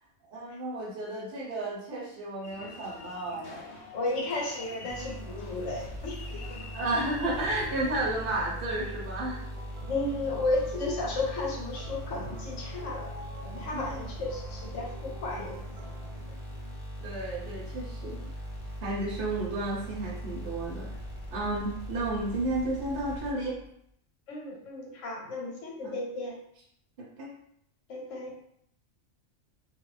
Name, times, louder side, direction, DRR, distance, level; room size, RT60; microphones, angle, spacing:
voice 1, 0.3-3.7 6.7-9.4 13.7-14.1 17.0-18.2 18.8-20.9 21.3-23.6 25.8-25.9 27.2-27.3, right 2 dB, 50° right, -4 dB, 0.9 m, -32 dB
sound 1, 2.4-7.9, left 3 dB, 60° left, 0.8 m, -46 dB
voice 2, 3.9-6.4 9.9-13.1 13.4-15.5 18.0-18.3 24.3-26.3 27.9-28.3, left 2 dB, 85° left, -1 dB, 1.1 m, -33 dB
sound 2, 4.9-23.7, equal, 30° left, 0.8 m, -40 dB
sound 3, 6.8-16.1, right 2 dB, 85° right, 1.0 m, -47 dB
2.4 x 2.3 x 3.1 m, 0.70 s
omnidirectional pair, 1.3 m